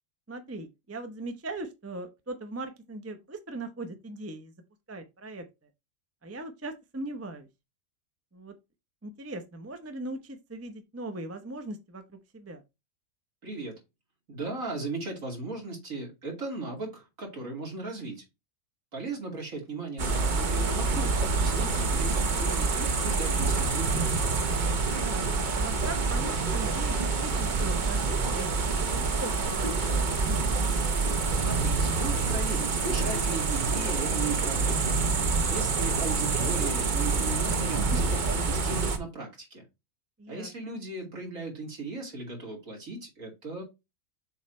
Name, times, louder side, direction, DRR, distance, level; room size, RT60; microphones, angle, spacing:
voice 1, 0.3-4.5 4.9-5.4 6.2-7.5 8.3-8.5 9.0-12.6 20.5-20.9 24.8-30.4 40.2-40.8, right 2 dB, 15° right, 0.5 m, -40 dB
voice 2, 13.4-13.7 14.3-18.2 18.9-24.1 31.4-34.9 35.5-39.6 40.3-43.6, right 3 dB, 65° right, 2.8 m, -37 dB
sound 1, 20.0-39.0, right 4 dB, 40° right, 0.8 m, -27 dB
7.1 x 3.1 x 4.3 m
omnidirectional pair, 1.5 m